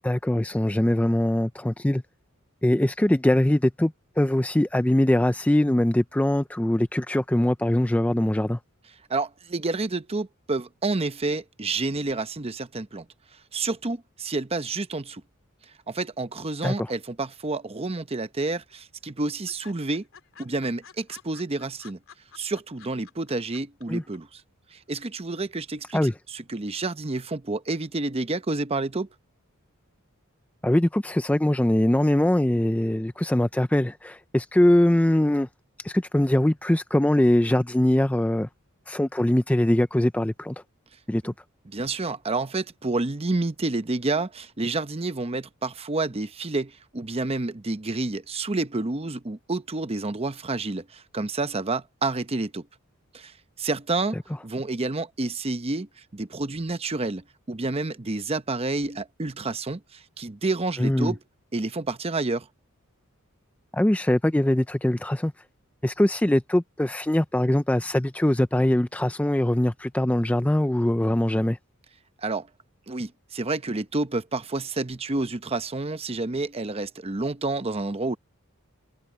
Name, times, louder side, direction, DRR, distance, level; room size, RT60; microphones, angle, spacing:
voice 1, 0.0-2.0 2.6-8.6 16.6-16.9 23.9-24.0 25.9-26.1 30.6-35.5 35.8-38.5 38.9-40.6 41.1-41.3 60.8-61.1 63.7-65.3 65.8-71.6, left 1 dB, 5° left, 0.4 m, -22 dB
voice 2, 9.1-13.0 13.5-15.2 15.9-20.1 20.4-22.0 22.4-24.4 24.7-29.1 41.2-41.3 41.7-52.7 53.1-53.3 53.6-54.2 54.4-61.2 61.5-62.5 72.2-72.5 72.9-78.2, right 3 dB, 30° right, 0.8 m, -29 dB
sound 1, 17.8-18.4 18.7-18.8 19.1-19.2 19.5-23.8 24.1-24.2, left 7 dB, 65° left, 3.9 m, -50 dB
head